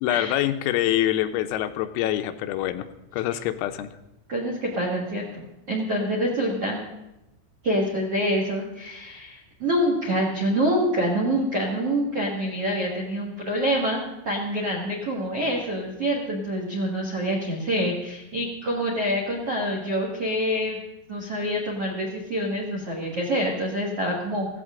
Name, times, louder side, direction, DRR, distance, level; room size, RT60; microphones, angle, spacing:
voice 1, 0.0-2.9 3.1-3.9, left 13 dB, 90° left, 9 dB, 3.5 m, -25 dB
voice 2, 4.3-6.9 7.6-20.8 21.1-24.5, equal, 65° right, 0 dB, 1.4 m, -26 dB
16.0 x 15.5 x 3.8 m, 0.92 s
omnidirectional pair, 5.9 m